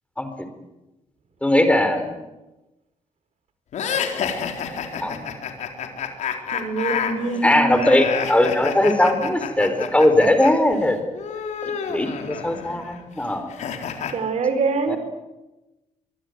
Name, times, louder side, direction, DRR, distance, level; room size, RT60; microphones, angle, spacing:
voice 1, 0.2-0.5 1.4-2.2 5.0-5.3 7.4-11.0 11.6-13.5 14.9-15.0, left 1 dB, 10° left, 9 dB, 4.5 m, -20 dB
sound 1, 3.7-10.5 10.8-14.1, left 7 dB, 80° left, 4.0 m, -29 dB
voice 2, 6.5-7.9 14.1-15.0, right 3 dB, 65° right, 9 dB, 5.0 m, -24 dB
23.5 x 23.5 x 9.6 m, 1.0 s
cardioid pair, 105°, 12 cm